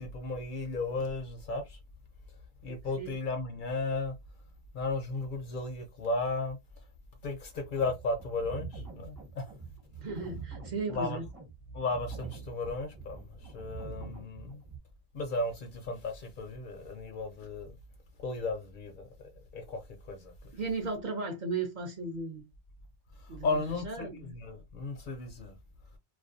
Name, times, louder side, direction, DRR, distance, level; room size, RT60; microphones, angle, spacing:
voice 1, 0.0-1.8 2.6-4.2 4.7-6.6 7.2-9.5 10.9-11.2 11.7-14.6 15.1-17.8 18.2-19.8 20.1-20.3 23.2-25.5, left 3 dB, 60° left, 0.6 m, -35 dB
voice 2, 2.7-3.1 10.0-11.3 20.5-22.4 23.3-24.2, right 3 dB, 55° right, 0.6 m, -36 dB
sound 1, 7.5-14.8, right 5 dB, 35° right, 1.0 m, -45 dB
2.3 x 2.2 x 2.5 m
omnidirectional pair, 1.1 m